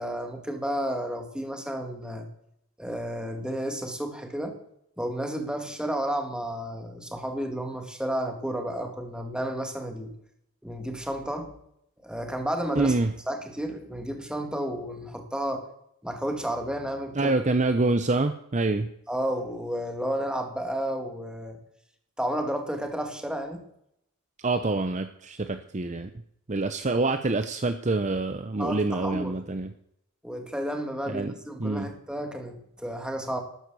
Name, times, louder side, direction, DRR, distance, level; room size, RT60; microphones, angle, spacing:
voice 1, 0.0-2.3 2.8-4.6 5.0-10.1 10.6-11.5 12.0-12.9 13.3-15.7 16.0-17.3 19.1-21.6 22.2-23.6 28.6-29.4 30.2-33.4, equal, 5° right, 4 dB, 2.2 m, -32 dB
voice 2, 12.8-13.1 17.1-18.9 24.4-26.1 26.5-29.7 31.1-31.3 31.6-31.9, right 2 dB, 30° right, 9 dB, 0.7 m, -26 dB
13.0 x 10.0 x 8.2 m, 0.75 s
head